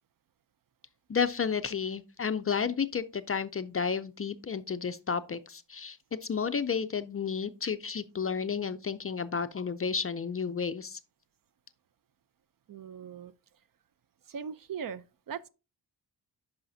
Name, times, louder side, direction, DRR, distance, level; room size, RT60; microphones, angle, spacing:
voice 1, 1.1-11.0, left 6 dB, 35° left, 0.4 m, -32 dB
voice 2, 12.7-13.3 14.3-15.5, right 7 dB, 55° right, 0.5 m, -40 dB
9.8 x 5.6 x 2.6 m
wide cardioid pair, 120°, 42 cm